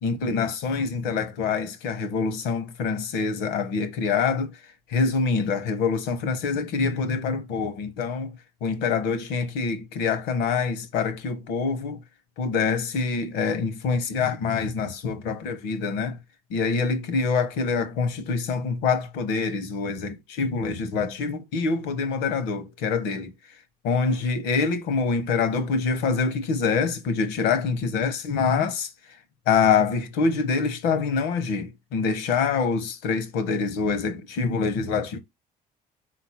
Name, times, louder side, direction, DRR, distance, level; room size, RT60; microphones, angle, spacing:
voice 1, 0.0-4.6 4.9-12.0 12.4-16.2 16.5-23.3 23.8-29.2 29.5-35.2, left 5 dB, 80° left, 0.9 m, -25 dB
4.2 x 2.6 x 4.1 m
supercardioid pair, 65°, 18 cm